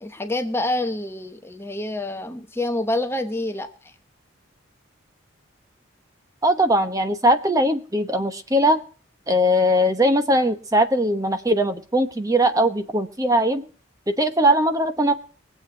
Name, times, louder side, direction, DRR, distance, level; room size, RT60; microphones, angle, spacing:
voice 1, 0.0-3.9, left 1 dB, 10° left, 6 dB, 0.9 m, -27 dB
voice 2, 6.4-8.8 9.3-13.7 14.1-15.1, equal, 15° right, 9 dB, 1.0 m, -20 dB
22.5 x 7.9 x 4.5 m, 0.42 s
head